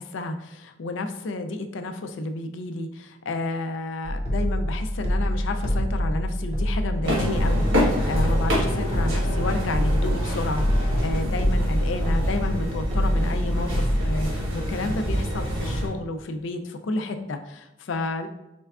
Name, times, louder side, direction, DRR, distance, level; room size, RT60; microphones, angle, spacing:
voice 1, 0.0-18.3, left 2 dB, 65° left, 7 dB, 0.4 m, -31 dB
sound 1, 4.0-14.2, equal, 30° right, 0.6 m, -25 dB
sound 2, 7.0-15.9, equal, 75° right, 1.4 m, -27 dB
4.3 x 3.3 x 2.4 m, 0.94 s
head